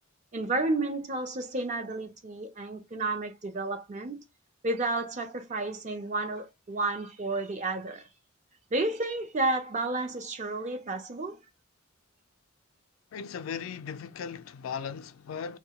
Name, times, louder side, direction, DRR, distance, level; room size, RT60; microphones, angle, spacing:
voice 1, 0.3-4.2 4.6-8.0 8.7-11.4, right 2 dB, 35° right, 0.5 m, -31 dB
voice 2, 13.1-15.6, left 7 dB, 85° left, 0.3 m, -37 dB
2.2 x 2.1 x 2.8 m
head